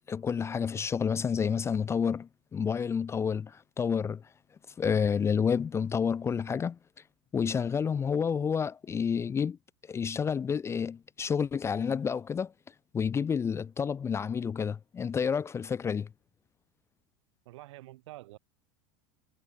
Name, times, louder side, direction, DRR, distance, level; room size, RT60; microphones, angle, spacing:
voice 1, 0.1-4.2 4.8-6.8 7.3-9.6 9.9-12.5 12.9-16.1, left 6 dB, 15° left, 0.6 m, -29 dB
voice 2, 17.4-18.4, right 17 dB, 85° right, 6.1 m, -47 dB
supercardioid pair, 145°, 15 cm